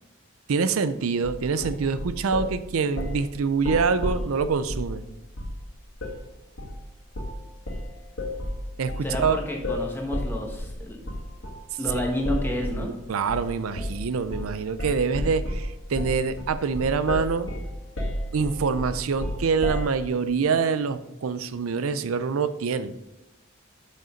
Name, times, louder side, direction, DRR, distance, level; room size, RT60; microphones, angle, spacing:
voice 1, 0.5-5.0 8.8-9.4 12.6-17.5 18.3-22.9, right 5 dB, 85° right, 13 dB, 0.5 m, -25 dB
sound 1, 1.2-2.5 3.0-3.2 3.6-4.9 5.4-5.6 6.0-6.2 6.6-6.8 7.1-7.4 7.7-12.9 13.3-13.5 13.8-14.0 14.3-14.5 14.8-19.9, left 1 dB, 65° left, 2.0 m, -31 dB
voice 2, 9.0-11.0 11.8-12.9, left 1 dB, 10° left, 0 dB, 1.3 m, -30 dB
6.6 x 6.6 x 5.1 m, 0.95 s
head